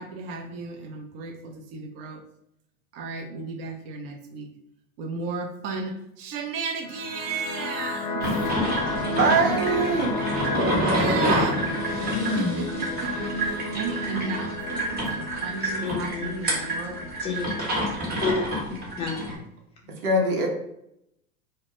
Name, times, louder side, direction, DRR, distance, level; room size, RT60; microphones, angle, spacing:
voice 1, 0.0-2.2 2.9-4.5 5.0-8.3 9.3-9.7 10.8-11.6 12.3-17.1 17.9-18.4, right 4 dB, 45° right, 4 dB, 0.5 m, -34 dB
sound 1, 6.8-17.8, left 1 dB, 65° left, 0.6 m, -32 dB
sound 2, 8.2-19.3, equal, 20° right, 0.8 m, -28 dB
voice 2, 9.1-10.2 20.0-20.5, right 3 dB, 75° right, 1 dB, 0.8 m, -22 dB
voice 3, 13.1-13.6 15.3-16.6 17.2-17.7 18.2-19.4, left 4 dB, 15° left, -2 dB, 0.5 m, -32 dB
2.1 x 2.1 x 2.9 m, 0.80 s
hypercardioid pair, 90°, 45 cm